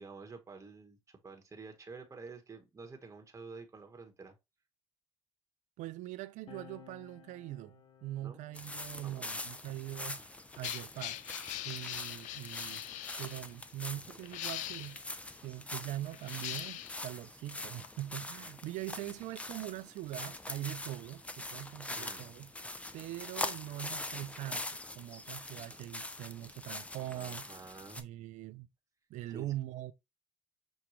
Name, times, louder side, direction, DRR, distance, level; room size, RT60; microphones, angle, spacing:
voice 1, 0.0-4.4 8.2-8.5 9.0-9.3 21.9-22.2 27.1-28.1 29.3-29.5, right 4 dB, 25° right, 1.0 m, -49 dB
voice 2, 5.8-11.2 11.6-12.8 13.2-15.2 15.4-22.5 22.9-27.5 28.0-28.7 29.1-29.9, right 15 dB, 70° right, 0.4 m, -42 dB
sound 1, 6.5-13.4 14.4-16.2, left 8 dB, 50° left, 0.7 m, -61 dB
sound 2, 8.5-28.0, left 2 dB, 10° left, 0.5 m, -43 dB
sound 3, 9.9-13.4 14.2-15.0 16.1-17.1 17.8-17.9, left 13 dB, 70° left, 0.4 m, -42 dB
6.1 x 2.2 x 2.9 m
supercardioid pair, 80°, 13 cm